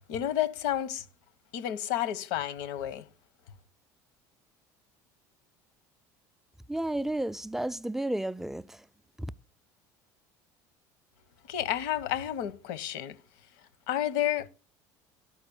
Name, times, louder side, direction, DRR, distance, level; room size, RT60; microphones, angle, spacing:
voice 1, 0.1-1.0 1.5-3.0 11.5-13.2 13.9-14.5, left 12 dB, 80° left, 1.0 m, -30 dB
voice 2, 6.7-8.8, right 1 dB, 5° right, 0.4 m, -32 dB
12.5 x 4.3 x 7.0 m
supercardioid pair, 95°, 9 cm